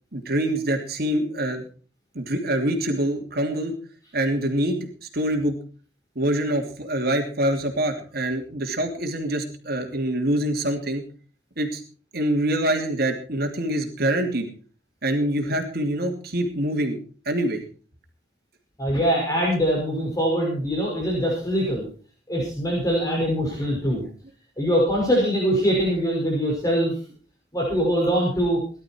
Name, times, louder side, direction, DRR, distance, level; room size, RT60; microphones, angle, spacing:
voice 1, 0.1-1.7 2.1-3.7 4.1-4.9 5.1-5.5 6.1-11.0 11.6-11.8 12.1-14.5 15.0-17.0 17.3-17.6 23.7-24.1, right 1 dB, 60° right, 4 dB, 2.9 m, -25 dB
voice 2, 18.8-21.8 22.3-24.0 24.6-26.9 27.5-28.6, equal, 20° left, -3 dB, 5.8 m, -23 dB
18.5 x 12.0 x 4.5 m, 0.39 s
head